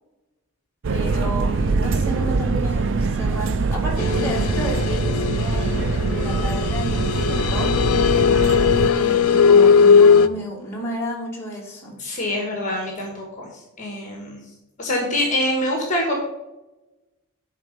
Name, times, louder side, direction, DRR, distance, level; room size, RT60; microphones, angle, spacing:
sound 1, 0.8-8.9, right 4 dB, 55° right, 0.4 m, -23 dB
voice 1, 0.9-7.7 8.9-12.0, equal, 10° left, -4 dB, 2.1 m, -31 dB
sound 2, 4.0-10.3, left 6 dB, 75° left, 0.5 m, -18 dB
voice 2, 4.0-4.5 12.0-13.5 13.8-14.4 14.8-16.1, left 1 dB, 35° left, 0 dB, 1.5 m, -25 dB
11.5 x 4.3 x 5.2 m, 1.0 s
head